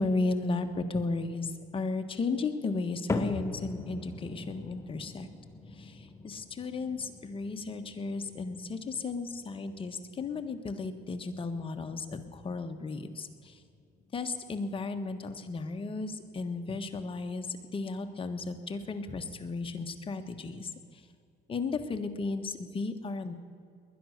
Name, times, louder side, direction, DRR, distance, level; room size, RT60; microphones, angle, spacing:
voice 1, 0.0-5.3 5.8-13.6 14.1-21.0 21.5-23.3, left 3 dB, 30° left, 6 dB, 1.5 m, -34 dB
sound 1, 3.1-19.4 19.7-20.2 20.8-20.9 21.8-21.9, left 2 dB, 15° left, 1.2 m, -44 dB
20.5 x 10.5 x 6.7 m, 2.4 s
cardioid pair, 110°, 17 cm